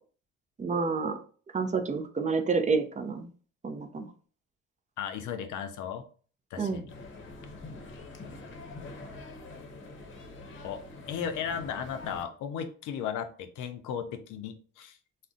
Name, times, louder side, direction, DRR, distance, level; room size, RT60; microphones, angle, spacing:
voice 1, 0.6-1.2 1.5-3.3 3.6-4.1 6.6-6.8, right 4 dB, 25° right, 7 dB, 0.4 m, -29 dB
voice 2, 5.0-6.1 6.5-6.9 10.6-10.8 11.1-15.0, left 8 dB, 85° left, 7 dB, 0.5 m, -35 dB
sound 1, 6.9-12.2, left 2 dB, 40° left, 0.8 m, -45 dB
2.5 x 2.1 x 3.6 m, 0.42 s
cardioid pair, 90°, 30 cm